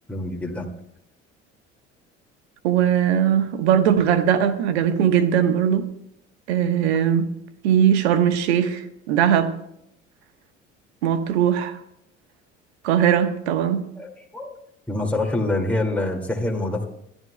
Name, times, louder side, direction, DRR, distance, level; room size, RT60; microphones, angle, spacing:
voice 1, 0.1-0.7 14.0-14.6 14.9-16.9, left 2 dB, 5° left, 2.2 m, -26 dB
voice 2, 2.6-5.9 6.5-7.3 7.6-9.5 11.0-11.8 12.8-13.9, right 9 dB, 65° right, 1.2 m, -20 dB
24.0 x 14.5 x 2.2 m
figure-of-eight pair, 60°, 35 cm